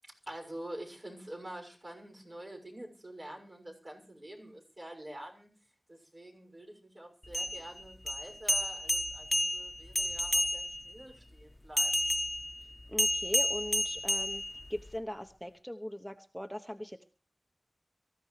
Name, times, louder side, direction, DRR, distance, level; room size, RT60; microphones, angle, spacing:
voice 1, 0.0-5.5 5.9-12.1, right 1 dB, 50° right, 0 dB, 6.4 m, -47 dB
sound 1, 7.2-10.9 11.8-14.9, left 1 dB, 20° left, 1.1 m, -31 dB
voice 2, 12.9-14.4 14.7-17.2, equal, ahead, 5 dB, 1.0 m, -40 dB
24.5 x 14.5 x 3.3 m, 0.37 s
wide cardioid pair, 55°, 0 cm